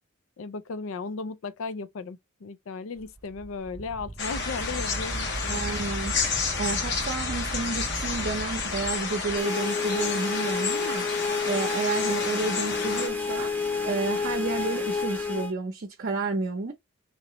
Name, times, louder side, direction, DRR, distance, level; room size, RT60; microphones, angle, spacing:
voice 1, 0.4-5.7, left 4 dB, 70° left, 0.4 m, -36 dB
Wind, 3.0-9.4, right 2 dB, 15° right, 0.3 m, -37 dB
sound 1, 4.2-13.1, left 5 dB, 55° left, 0.9 m, -31 dB
voice 2, 5.5-6.1 6.6-11.1 11.4-13.5 13.8-16.7, right 3 dB, 50° right, 0.7 m, -31 dB
sound 2, 9.4-15.5, left 4 dB, 10° left, 0.7 m, -29 dB
3.1 x 2.9 x 2.9 m
head